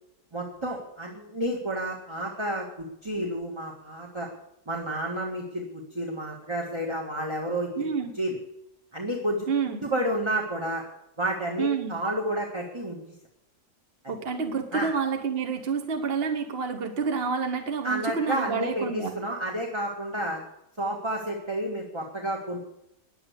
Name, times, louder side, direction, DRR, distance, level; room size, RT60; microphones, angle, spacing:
voice 1, 0.3-4.3 4.7-7.9 8.1-8.4 8.9-10.8 11.2-13.0 14.0-14.1 14.7-14.9 17.8-20.4 20.8-22.6, right 1 dB, 15° right, 0 dB, 1.6 m, -30 dB
voice 2, 7.8-8.1 9.5-9.8 11.6-12.0 14.1-19.1, right 5 dB, 40° right, 6 dB, 1.2 m, -28 dB
10.5 x 8.7 x 8.1 m, 0.82 s
omnidirectional pair, 1.7 m